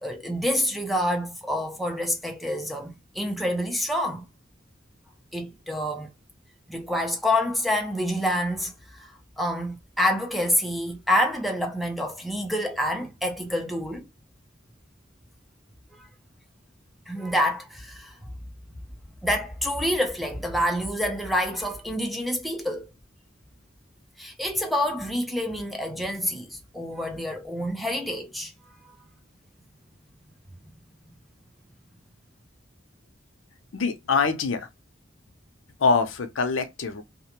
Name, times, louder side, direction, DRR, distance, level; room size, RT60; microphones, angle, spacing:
voice 1, 0.0-4.2 5.3-6.1 6.7-14.1 15.9-16.1 17.1-18.2 19.2-22.9 24.2-28.9, left 1 dB, ahead, 0.5 m, -27 dB
voice 2, 33.7-34.7 35.8-37.0, left 4 dB, 85° left, 0.6 m, -24 dB
2.4 x 2.1 x 2.8 m
head